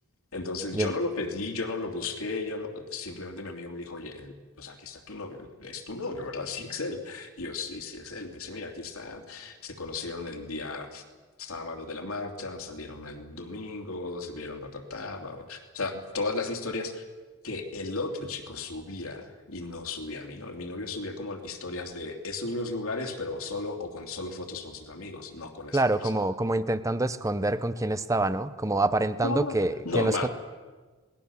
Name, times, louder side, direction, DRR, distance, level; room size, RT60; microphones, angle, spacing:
voice 1, 0.3-11.0 11.4-17.0 17.4-26.1 29.2-29.5 29.8-30.3, left 3 dB, 75° left, 4 dB, 2.8 m, -35 dB
voice 2, 25.7-30.3, right 2 dB, 15° right, 13 dB, 0.7 m, -26 dB
27.0 x 20.0 x 7.1 m, 1.4 s
head